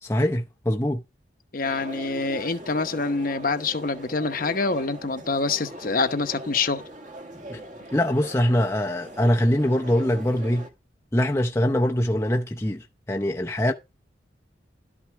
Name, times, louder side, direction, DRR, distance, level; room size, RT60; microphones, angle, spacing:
voice 1, 0.0-1.0 7.5-7.6 7.9-10.7 11.1-13.7, left 1 dB, 15° left, 0.7 m, -23 dB
voice 2, 1.5-6.8, left 3 dB, 50° left, 0.9 m, -26 dB
sound 1, 1.6-10.7, right 1 dB, 45° right, 1.9 m, -41 dB
12.5 x 6.0 x 4.6 m
head